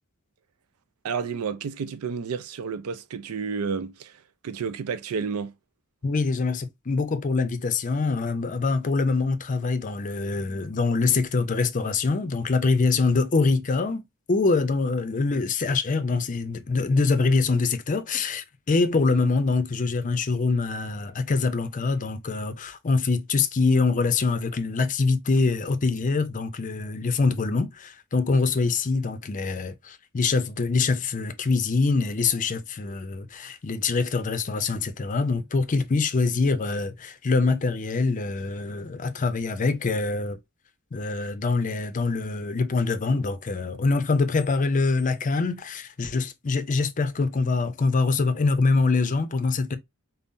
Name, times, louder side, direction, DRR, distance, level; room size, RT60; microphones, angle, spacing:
voice 1, 1.0-5.5, right 5 dB, 80° right, 0.4 m, -31 dB
voice 2, 6.0-14.0 14.3-40.4 40.9-49.8, left 4 dB, 35° left, 0.5 m, -24 dB
5.3 x 2.0 x 2.6 m
head